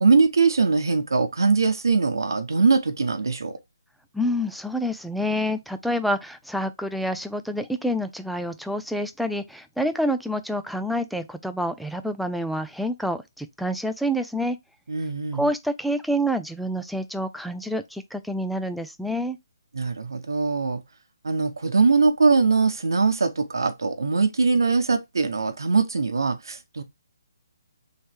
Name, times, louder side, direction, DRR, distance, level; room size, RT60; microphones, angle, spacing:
voice 1, 0.0-3.6 14.9-15.5 19.7-20.8 21.2-26.8, right 4 dB, 80° right, 0.9 m, -21 dB
voice 2, 4.1-14.6 15.3-19.4, equal, ahead, 0.3 m, -27 dB
3.3 x 3.1 x 4.3 m
hypercardioid pair, 155°, 2 cm